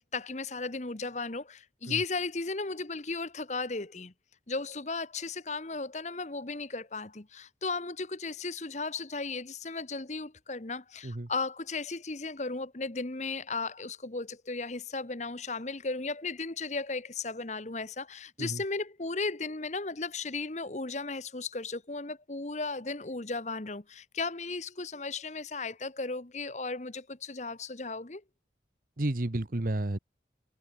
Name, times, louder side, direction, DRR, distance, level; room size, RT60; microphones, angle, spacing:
voice 1, 0.0-4.1 4.5-28.2, left 3 dB, 40° left, 1.2 m, -35 dB
voice 2, 29.0-30.0, right 1 dB, 50° right, 1.1 m, -31 dB
head